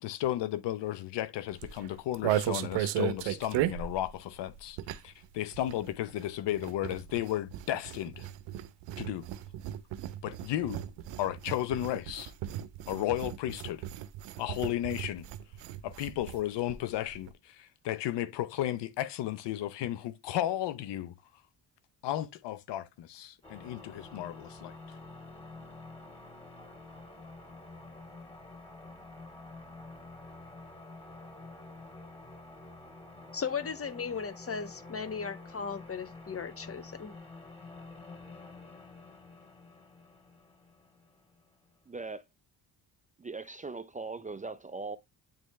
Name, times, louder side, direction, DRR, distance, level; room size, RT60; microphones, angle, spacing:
voice 1, 0.0-4.8 5.0-8.3 9.0-9.2 10.2-10.8 11.2-12.3 12.9-13.8 14.4-15.3 15.8-21.1 22.0-24.7, left 13 dB, 75° left, 0.7 m, -34 dB
sound 1, 1.5-5.2 5.5-16.4 16.7-16.8 17.0-17.3, right 12 dB, 90° right, 0.7 m, -36 dB
sound 2, 23.4-41.7, left 3 dB, 15° left, 2.5 m, -49 dB
voice 2, 33.3-37.1, left 6 dB, 30° left, 1.2 m, -36 dB
voice 3, 41.9-42.2 43.2-45.0, right 3 dB, 20° right, 0.5 m, -39 dB
8.9 x 3.3 x 3.1 m
cardioid pair, 75°, 42 cm